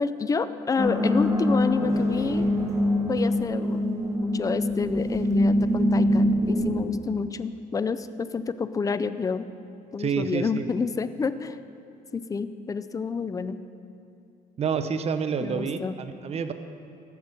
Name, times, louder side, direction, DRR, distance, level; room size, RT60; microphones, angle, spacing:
voice 1, 0.0-2.5 3.1-9.5 9.9-11.6 12.1-13.6 15.4-15.9, left 5 dB, 20° left, 13 dB, 0.4 m, -29 dB
sound 1, 0.8-6.7, left 1 dB, 15° right, 1.7 m, -24 dB
voice 2, 10.0-10.7 14.6-16.5, right 6 dB, 40° right, 10 dB, 0.7 m, -28 dB
14.0 x 6.8 x 5.2 m, 2.5 s
cardioid pair, 110°, 17 cm